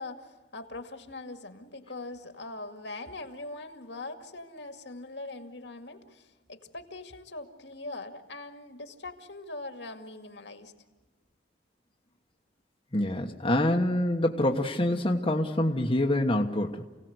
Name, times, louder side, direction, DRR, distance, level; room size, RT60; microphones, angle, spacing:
voice 1, 0.0-10.7, left 2 dB, 70° left, 6 dB, 2.2 m, -42 dB
voice 2, 12.9-16.8, left 1 dB, 30° left, 1 dB, 1.3 m, -26 dB
28.5 x 17.5 x 8.0 m, 1.3 s
head